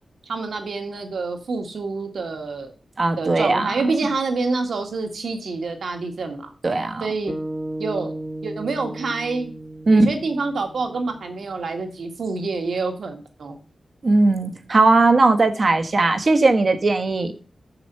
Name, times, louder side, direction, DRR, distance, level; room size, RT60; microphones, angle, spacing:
voice 1, 0.2-2.7 3.2-6.5 7.0-7.3 7.8-8.1 8.4-9.5 9.9-13.6, right 3 dB, 85° right, 5 dB, 1.8 m, -27 dB
voice 2, 3.0-3.8 6.6-7.0 9.9-10.1 14.0-17.3, right 3 dB, 50° right, 8 dB, 1.3 m, -18 dB
sound 1, 7.3-11.6, right 1 dB, 10° right, 1.5 m, -34 dB
6.9 x 6.8 x 6.8 m, 0.38 s
wide cardioid pair, 80°, 0 cm